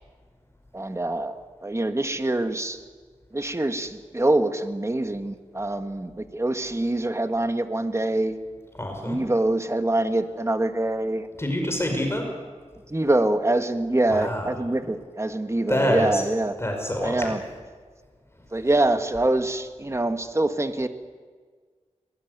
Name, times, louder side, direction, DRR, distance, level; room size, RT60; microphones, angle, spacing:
voice 1, 0.7-2.8 3.3-8.4 9.0-11.3 12.9-16.5 17.0-17.4 18.5-20.9, right 1 dB, 20° right, 8 dB, 1.6 m, -25 dB
voice 2, 8.8-9.2 11.4-12.3 14.1-14.6 15.7-16.2 16.6-17.4, equal, 20° left, 3 dB, 5.4 m, -26 dB
22.5 x 19.5 x 9.4 m, 1.5 s
wide cardioid pair, 70°, 12 cm